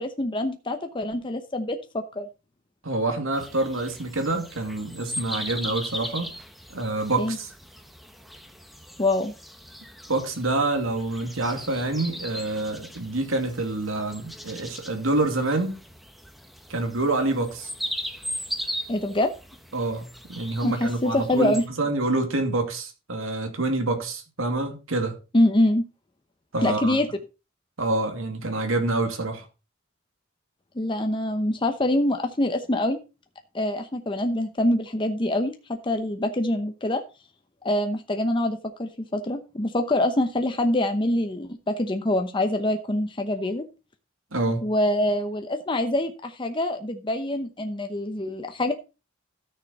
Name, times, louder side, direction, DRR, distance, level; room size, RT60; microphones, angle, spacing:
voice 1, 0.0-2.3 7.2-7.4 9.0-9.3 18.9-19.3 20.6-21.6 25.3-25.8 26.6-27.1 30.8-33.0 33.5-37.0 37.6-43.6 44.6-48.7, left 1 dB, 25° left, 0.8 m, -25 dB
voice 2, 2.8-6.3 6.7-7.5 10.1-15.8 16.7-17.7 19.7-25.2 26.5-27.0 27.8-29.5 44.3-44.6, right 2 dB, 80° right, 2.4 m, -27 dB
sound 1, 3.3-21.7, equal, ahead, 1.0 m, -38 dB
13.5 x 6.7 x 4.1 m
head